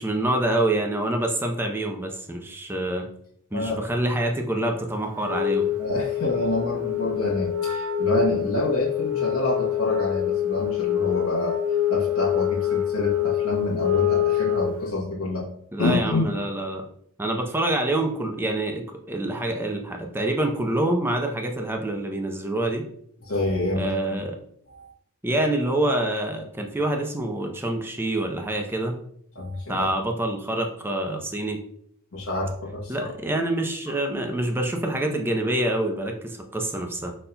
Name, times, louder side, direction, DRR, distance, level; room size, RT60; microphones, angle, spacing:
voice 1, 0.0-3.1 3.5-5.7 15.7-16.9 17.2-22.8 23.8-24.4 25.2-29.0 29.7-31.6 32.9-37.1, right 1 dB, 10° right, 3 dB, 0.5 m, -26 dB
Wind instrument woodwind instrument, 5.1-14.9, left 11 dB, 90° right, 0.5 m, -25 dB
voice 2, 5.8-11.6 11.9-15.5 15.8-16.3 23.3-24.2 24.7-24.9 29.3-29.9 32.1-33.1 33.9-34.0, left 1 dB, 65° left, -5 dB, 1.0 m, -27 dB
5.3 x 4.3 x 2.2 m, 0.69 s
head